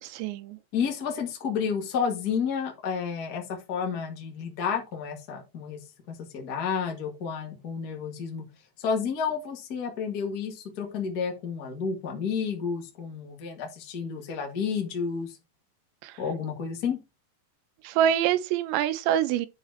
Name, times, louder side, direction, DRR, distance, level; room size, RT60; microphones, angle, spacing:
voice 1, 0.0-0.6 16.0-16.2 17.8-19.5, right 10 dB, 90° right, 3.0 m, -25 dB
voice 2, 0.7-5.8 6.1-8.4 8.8-15.3 16.2-17.0, left 6 dB, 50° left, 1.1 m, -31 dB
9.1 x 4.1 x 4.7 m
omnidirectional pair, 5.0 m